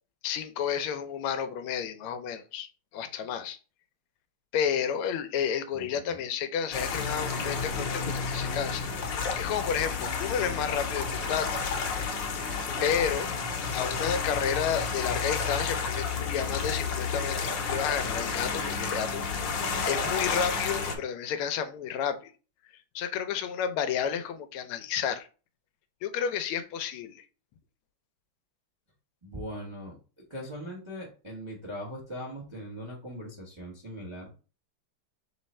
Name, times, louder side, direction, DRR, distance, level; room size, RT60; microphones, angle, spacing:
voice 1, 0.2-2.7 2.9-3.6 4.5-8.9 9.3-11.5 12.8-13.3 13.7-22.3 22.9-25.3 26.0-27.2, left 8 dB, 90° left, 9 dB, 1.5 m, -31 dB
voice 2, 5.7-6.2 29.2-30.0 30.3-34.3, equal, 30° right, -2 dB, 0.5 m, -40 dB
sound 1, 6.7-21.0, left 5 dB, 65° left, 1.3 m, -31 dB
3.7 x 3.2 x 4.1 m, 0.35 s
omnidirectional pair, 2.3 m